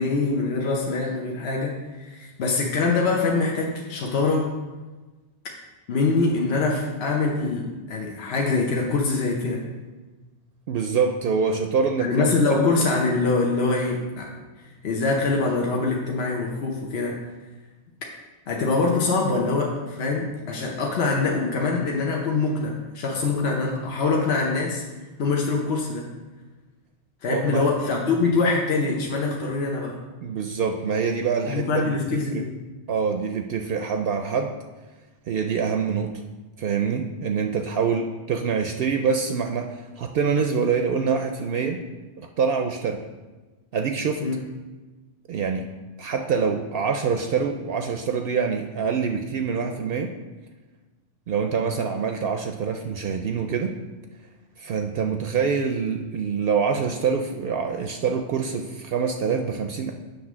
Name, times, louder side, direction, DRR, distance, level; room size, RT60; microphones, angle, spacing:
voice 1, 0.0-4.5 5.9-9.6 12.0-14.3 14.8-17.2 18.5-24.8 25.2-26.1 27.2-30.0 31.5-32.5 44.2-44.4, left 3 dB, 70° left, -1 dB, 1.1 m, -24 dB
voice 2, 10.7-12.7 27.3-27.7 30.2-32.4 32.9-34.5 35.3-36.1 36.6-41.8 42.2-43.0 43.7-44.2 45.3-45.7 46.0-50.1 51.3-53.8 54.6-59.9, right 6 dB, 65° right, 5 dB, 0.7 m, -25 dB
7.9 x 3.4 x 6.1 m, 1.2 s
omnidirectional pair, 1.1 m